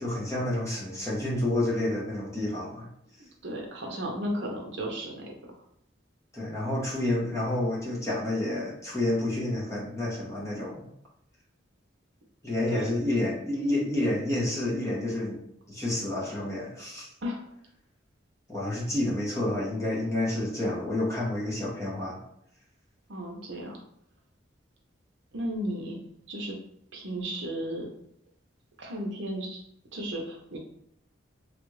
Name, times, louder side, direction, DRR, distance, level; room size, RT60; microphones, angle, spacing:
voice 1, 0.0-2.9 6.3-10.9 12.4-15.4 15.7-17.1 18.5-22.2, left 1 dB, 15° left, -5 dB, 1.0 m, -29 dB
voice 2, 3.4-5.3 12.7-12.9 16.2-16.3 17.2-17.4 23.1-23.8 25.3-26.0 26.3-26.5 26.9-27.9 28.8-29.6 29.9-30.6, equal, 65° right, 1 dB, 0.7 m, -34 dB
3.2 x 2.4 x 3.1 m, 0.72 s
head